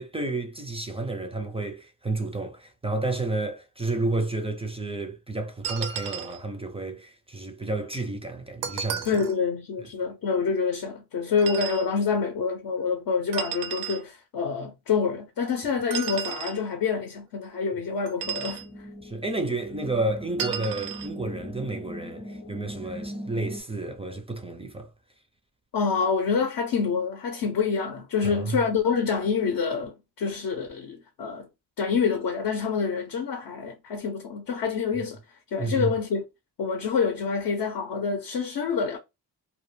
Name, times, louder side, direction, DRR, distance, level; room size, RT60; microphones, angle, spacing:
voice 1, 0.0-9.2 19.0-24.9 28.2-28.6 35.6-35.9, right 2 dB, 15° right, 0.4 m, -31 dB
sound 1, 5.6-6.4 8.6-9.4 11.4-11.9 13.3-14.0 15.9-16.6 18.1-18.7 20.4-21.1, right 8 dB, 85° right, 0.5 m, -33 dB
voice 2, 9.1-18.6 25.7-31.5 31.8-35.2 35.5-36.2 36.6-39.0, left 5 dB, 65° left, 0.6 m, -27 dB
sound 2, 18.2-23.6, equal, 25° left, 0.7 m, -40 dB
2.2 x 2.1 x 3.1 m
cardioid pair, 75°, 39 cm